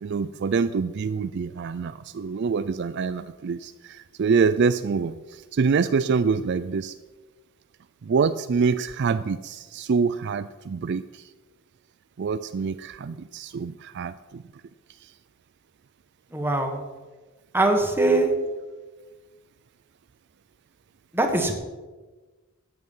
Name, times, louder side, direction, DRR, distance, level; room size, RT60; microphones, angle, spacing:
voice 1, 0.0-6.9 8.0-11.3 12.2-14.4 15.0-15.1, right 5 dB, 50° right, 12 dB, 0.4 m, -26 dB
voice 2, 16.3-16.8 17.5-18.3 21.1-21.5, right 2 dB, 10° right, 3 dB, 1.6 m, -21 dB
14.0 x 9.5 x 5.5 m, 1.3 s
head